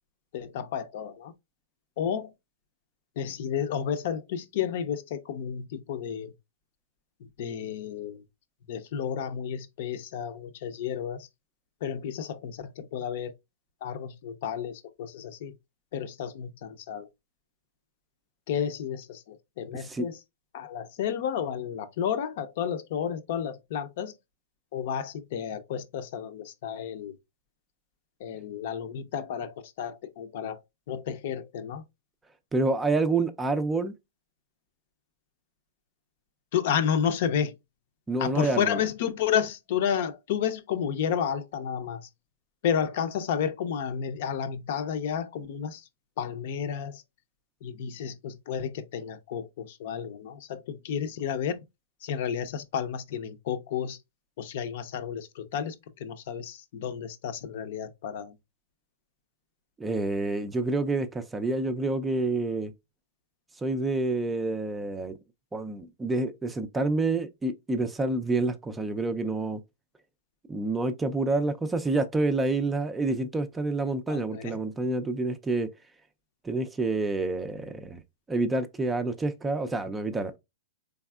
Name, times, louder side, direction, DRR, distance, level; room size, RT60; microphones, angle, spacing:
voice 1, 0.3-1.3 2.0-2.3 3.2-6.3 7.2-8.2 8.7-11.3 11.8-13.3 13.8-15.6 15.9-17.1 18.5-20.2 20.5-24.1 24.7-27.2 28.2-30.6 30.9-31.8 36.5-37.6 38.2-42.1 42.6-45.9 46.2-47.0 47.6-51.6 52.0-54.0 54.4-58.3 74.1-74.6, left 8 dB, 55° left, 0.6 m, -31 dB
voice 2, 32.5-33.9 38.1-38.8 59.8-62.7 63.6-65.1 65.5-69.6 70.5-75.7 76.4-78.0 78.3-80.4, right 2 dB, 10° right, 0.4 m, -28 dB
4.0 x 3.5 x 2.3 m
hypercardioid pair, 140°, 0 cm